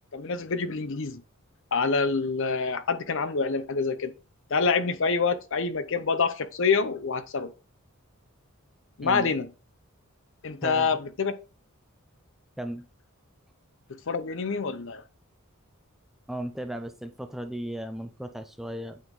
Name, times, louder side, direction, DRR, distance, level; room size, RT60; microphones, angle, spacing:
voice 1, 0.1-1.2 1.7-4.1 4.5-7.5 9.0-9.5 10.4-11.3 14.1-15.0, left 4 dB, 60° left, 0.7 m, -26 dB
voice 2, 9.0-9.3 10.6-11.0 12.6-12.8 16.3-19.0, right 1 dB, ahead, 0.4 m, -36 dB
8.6 x 3.6 x 3.9 m
head